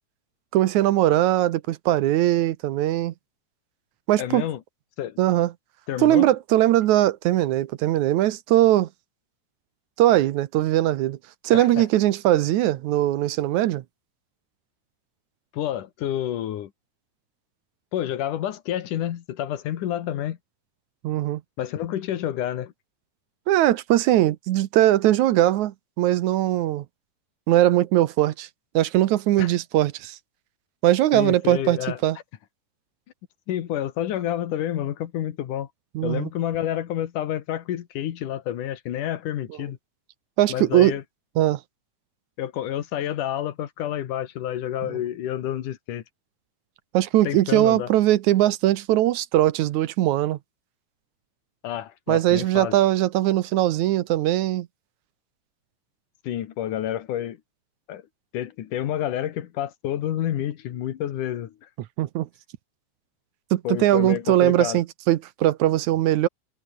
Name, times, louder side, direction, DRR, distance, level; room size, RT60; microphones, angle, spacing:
voice 1, 0.5-3.1 4.1-4.5 5.2-5.5 6.0-8.9 10.0-11.2 11.4-13.8 21.0-21.4 23.5-26.9 27.5-28.5 28.7-30.2 30.8-32.2 36.0-36.3 40.4-40.9 41.4-41.6 46.9-50.4 52.1-54.7 62.0-62.3 63.5-66.3, right 14 dB, 75° right, 2.2 m, -20 dB
voice 2, 4.2-4.6 5.0-5.2 5.9-6.3 11.5-11.9 15.5-16.7 17.9-20.4 21.6-22.7 29.4-29.5 31.1-32.0 33.5-35.7 36.0-39.8 40.5-41.0 42.4-46.0 47.2-47.9 51.6-52.8 56.2-57.4 57.9-58.0 58.3-61.5 63.6-64.8, left 11 dB, 80° left, 3.0 m, -29 dB
omnidirectional pair, 3.6 m